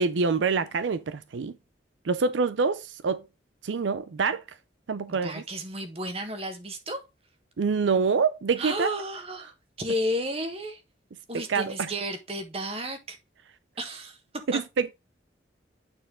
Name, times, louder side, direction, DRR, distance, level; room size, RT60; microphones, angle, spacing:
voice 1, 0.0-1.5 2.0-3.2 3.6-4.4 4.9-5.4 7.6-8.9 11.3-11.9 14.5-14.9, right 4 dB, 85° right, 0.5 m, -26 dB
voice 2, 5.1-7.0 8.6-10.8 11.3-13.2 13.8-14.2 14.5-14.6, equal, 35° right, 1.5 m, -32 dB
8.8 x 4.4 x 3.7 m
head